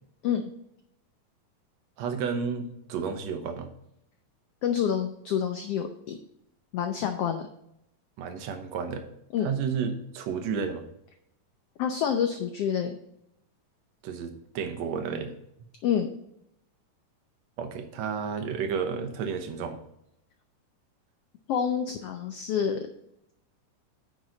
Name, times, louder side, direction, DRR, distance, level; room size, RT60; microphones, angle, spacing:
voice 1, 2.0-3.7 8.2-9.1 9.4-10.8 14.0-15.3 17.6-19.8, right 6 dB, 65° right, 7 dB, 2.0 m, -31 dB
voice 2, 4.6-6.2 6.7-7.5 9.3-9.5 11.8-13.0 15.8-16.1 21.5-22.8, left 8 dB, 85° left, 6 dB, 1.3 m, -27 dB
9.5 x 6.2 x 3.9 m, 0.79 s
omnidirectional pair, 3.7 m